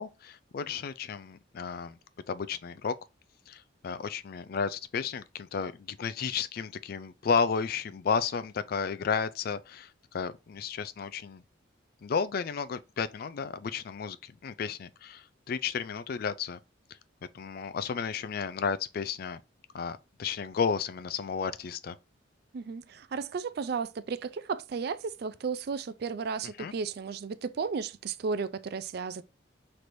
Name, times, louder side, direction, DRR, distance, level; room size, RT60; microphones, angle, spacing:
voice 1, 0.0-2.0 2.3-2.9 3.5-11.4 12.0-16.6 17.3-19.4 19.7-22.0 26.6-26.7, left 6 dB, 50° left, 0.3 m, -33 dB
voice 2, 22.5-29.2, right 5 dB, 55° right, 0.3 m, -34 dB
5.9 x 3.3 x 2.6 m
head